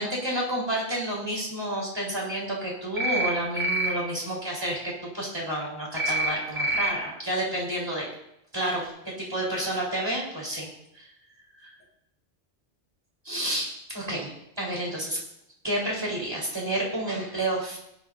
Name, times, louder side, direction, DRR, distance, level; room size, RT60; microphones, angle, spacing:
voice 1, 0.0-8.1 8.5-10.7 10.9-11.0 11.6-11.7 13.2-15.2 15.6-17.8, right 1 dB, 20° right, -4 dB, 4.5 m, -30 dB
sound 1, 3.0-3.3 3.6-3.9 6.0-6.3 6.6-6.9, right 2 dB, 45° right, 1.8 m, -26 dB
18.5 x 11.0 x 2.7 m, 0.78 s
omnidirectional pair, 1.1 m